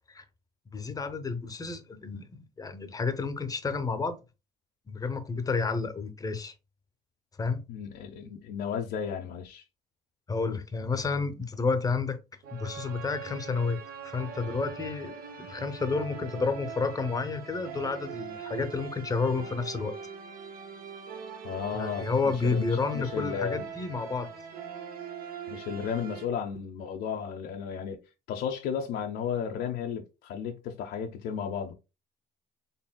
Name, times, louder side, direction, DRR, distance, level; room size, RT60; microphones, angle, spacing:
voice 1, 0.7-4.2 4.9-6.5 7.4-7.6 10.3-12.2 12.5-20.0 21.7-24.3, left 4 dB, 20° left, 0.7 m, -30 dB
voice 2, 7.7-9.6 21.4-22.6 22.9-23.7 25.5-28.0 28.3-31.7, left 7 dB, 75° left, 0.7 m, -34 dB
sound 1, 12.4-26.2, right 7 dB, 60° right, 1.0 m, -42 dB
4.2 x 3.4 x 2.2 m
cardioid pair, 110°, 17 cm